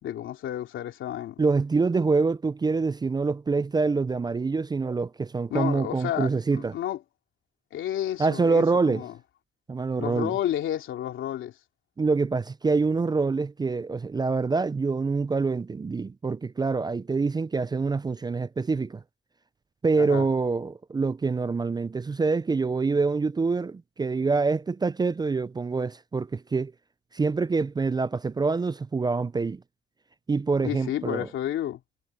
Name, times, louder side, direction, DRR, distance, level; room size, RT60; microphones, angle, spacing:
voice 1, 0.0-1.4 5.5-7.0 7.7-9.2 10.0-11.5 20.0-20.3 30.6-31.8, left 11 dB, 80° left, 3.2 m, -31 dB
voice 2, 1.4-6.7 8.2-9.0 9.7-10.3 12.0-19.0 19.8-26.7 27.1-29.6 30.3-31.3, right 4 dB, 20° right, 0.4 m, -25 dB
cardioid pair, 90°, 20 cm